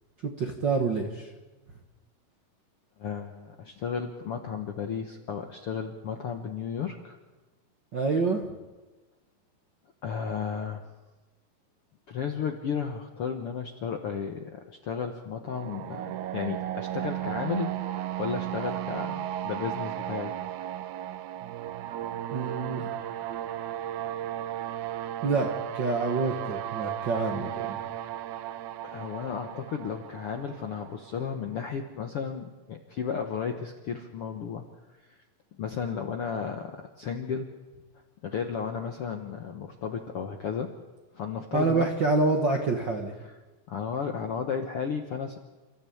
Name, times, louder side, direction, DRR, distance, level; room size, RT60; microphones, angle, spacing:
voice 1, 0.2-1.3 7.9-8.5 22.3-22.9 25.2-27.8 41.5-43.1, right 3 dB, 50° right, 3 dB, 1.4 m, -27 dB
voice 2, 3.0-7.2 10.0-10.8 12.1-17.7 18.2-20.3 28.8-34.6 35.1-35.2 35.6-37.5 38.2-40.7 41.1-41.9 43.7-45.4, left 6 dB, 65° left, 5 dB, 1.4 m, -33 dB
sound 1, 15.5-31.3, right 12 dB, 70° right, 2.1 m, -35 dB
28.5 x 14.0 x 8.5 m, 1.2 s
omnidirectional pair, 4.1 m